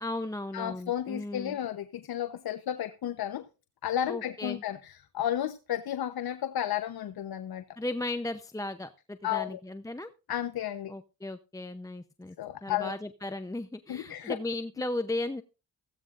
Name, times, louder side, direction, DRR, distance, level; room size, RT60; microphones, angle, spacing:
voice 1, 0.0-1.6 4.1-4.6 7.8-10.1 10.9-12.4 12.6-15.4, left 2 dB, 10° left, 9 dB, 0.7 m, -36 dB
voice 2, 0.5-3.4 3.8-7.6 9.2-9.6 10.3-10.9 12.4-12.9 13.9-14.4, left 11 dB, 70° left, 9 dB, 1.0 m, -33 dB
16.0 x 15.0 x 2.5 m, 0.31 s
cardioid pair, 80°, 38 cm